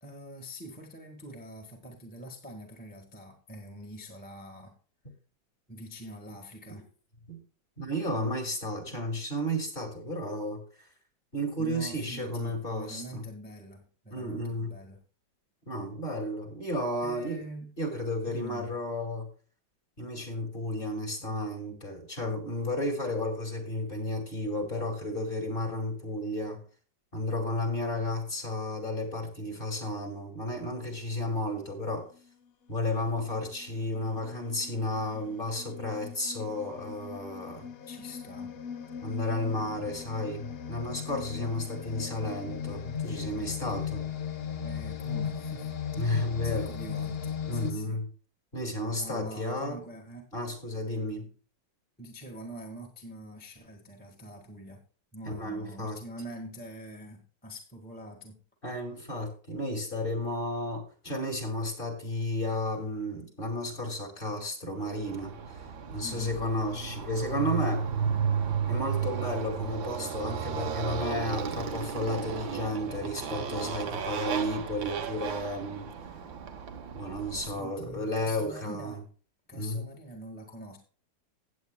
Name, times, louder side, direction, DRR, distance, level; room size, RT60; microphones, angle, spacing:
voice 1, 0.0-4.7 5.7-6.9 11.6-15.0 17.0-17.7 18.3-18.7 37.9-38.5 44.6-45.7 46.4-48.0 49.0-50.3 52.0-54.8 55.1-58.4 66.0-66.3 77.4-79.0 79.5-80.8, right 1 dB, 5° left, 0 dB, 1.5 m, -44 dB
voice 2, 7.8-10.6 11.3-13.2 14.1-14.7 15.7-17.4 17.8-19.3 20.0-26.6 27.1-32.1 32.7-37.7 39.0-44.1 46.0-46.7 47.5-48.1 48.5-49.8 50.3-51.3 55.2-56.0 58.6-65.3 65.9-67.9 68.7-75.9 76.9-79.0 79.5-79.8, left 1 dB, 30° left, 2 dB, 2.5 m, -32 dB
sound 1, 33.1-33.3 34.0-47.7, left 7 dB, 55° left, 0.7 m, -38 dB
Motorcycle, 64.9-77.6, right 7 dB, 90° right, 1.8 m, -34 dB
17.0 x 8.3 x 2.2 m, 0.40 s
omnidirectional pair, 2.0 m